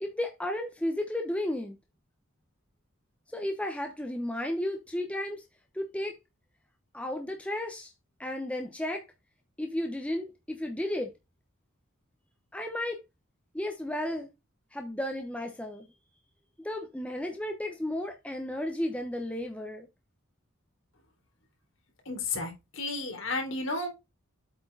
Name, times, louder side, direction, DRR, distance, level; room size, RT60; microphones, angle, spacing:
voice 1, 0.0-1.8 3.3-5.4 5.7-6.1 6.9-7.9 8.2-9.0 9.6-11.1 12.5-13.0 13.5-14.3 14.7-15.9 16.6-19.9, left 1 dB, 5° left, 0.9 m, -33 dB
voice 2, 22.1-23.9, left 3 dB, 65° left, 3.5 m, -33 dB
8.2 x 4.6 x 4.0 m
head